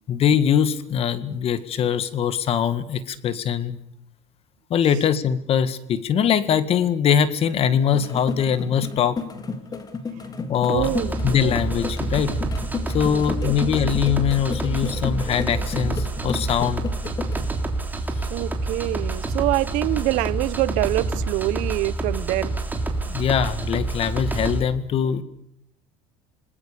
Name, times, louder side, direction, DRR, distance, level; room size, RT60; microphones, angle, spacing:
voice 1, 0.1-3.8 4.7-9.2 10.5-10.9 11.2-12.3 12.9-16.9 23.1-25.2, left 8 dB, 45° left, 1.8 m, -22 dB
sound 1, 7.7-17.5, left 4 dB, 25° left, 3.0 m, -33 dB
sound 2, 10.7-24.6, right 2 dB, 15° right, 3.4 m, -28 dB
voice 2, 10.7-11.5 13.0-13.6 18.3-22.6, right 18 dB, 70° right, 1.0 m, -25 dB
27.0 x 19.5 x 6.9 m
supercardioid pair, 105°, 14 cm